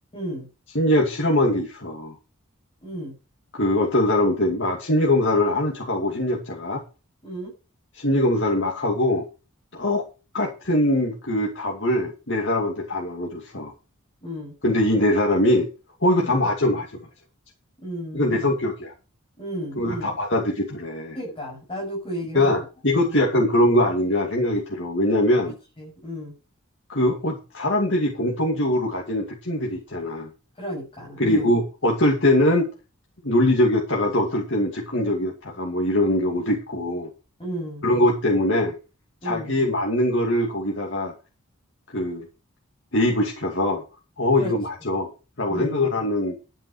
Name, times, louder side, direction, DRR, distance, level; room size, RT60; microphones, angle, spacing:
voice 1, 0.1-0.5 2.8-3.1 7.2-7.5 14.2-14.5 16.1-16.4 17.8-18.5 19.4-20.1 21.1-22.6 23.0-23.2 25.8-26.3 30.6-31.5 37.4-37.8 39.2-39.5 44.4-44.5 45.5-45.8, equal, 25° left, -4 dB, 7.8 m, -33 dB
voice 2, 0.7-2.1 3.5-6.8 7.9-9.3 9.7-10.0 10.3-13.7 14.6-15.7 16.0-17.0 18.1-18.9 19.8-21.2 22.3-25.5 26.9-30.3 31.2-32.7 33.2-37.1 37.8-38.7 39.2-41.1 41.9-42.3 42.9-43.8 44.2-45.1 45.4-46.4, left 1 dB, 55° left, 0 dB, 2.5 m, -22 dB
12.0 x 9.2 x 4.9 m, 0.32 s
head